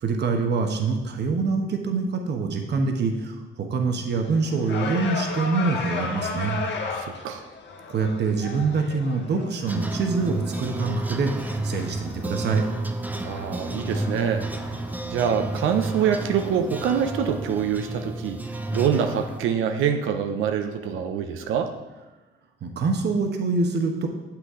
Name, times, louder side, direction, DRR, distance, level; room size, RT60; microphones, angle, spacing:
voice 1, 0.0-6.6 7.9-12.6 22.6-24.1, right 4 dB, 60° right, 4 dB, 1.1 m, -25 dB
sound 1, 4.1-16.4, left 4 dB, 60° left, 1.1 m, -36 dB
voice 2, 6.9-7.5 13.2-18.4 18.7-21.7, right 8 dB, 80° right, 6 dB, 0.6 m, -25 dB
sound 2, 9.7-19.4, right 2 dB, 10° right, 0.6 m, -31 dB
7.8 x 5.9 x 3.7 m, 1.1 s
cardioid pair, 90°, 20 cm